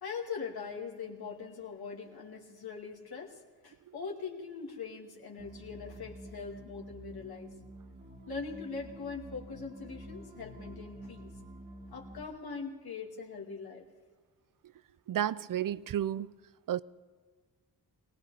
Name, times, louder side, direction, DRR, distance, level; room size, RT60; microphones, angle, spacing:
voice 1, 0.0-7.5 8.3-11.3 11.9-13.8, left 5 dB, 60° left, 2.4 m, -42 dB
sound 1, 5.4-12.2, equal, 25° right, 2.2 m, -49 dB
voice 2, 15.1-16.3 16.7-16.8, right 11 dB, 50° right, 0.5 m, -31 dB
21.0 x 17.5 x 3.4 m
cardioid pair, 85°, 42 cm